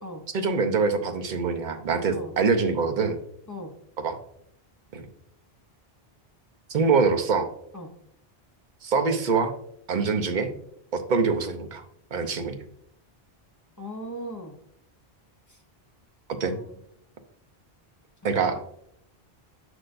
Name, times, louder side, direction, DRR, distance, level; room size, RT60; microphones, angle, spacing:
voice 1, 0.3-3.2 4.0-4.2 4.9-5.0 6.7-7.5 8.8-9.5 9.9-10.5 10.9-11.8 12.1-12.6 16.4-16.6 18.2-18.6, right 4 dB, 55° right, 5 dB, 0.8 m, -24 dB
voice 2, 13.8-14.6 15.5-15.6 16.5-16.8, equal, 20° left, 3 dB, 0.6 m, -38 dB
6.6 x 6.1 x 2.5 m, 0.72 s
omnidirectional pair, 1.0 m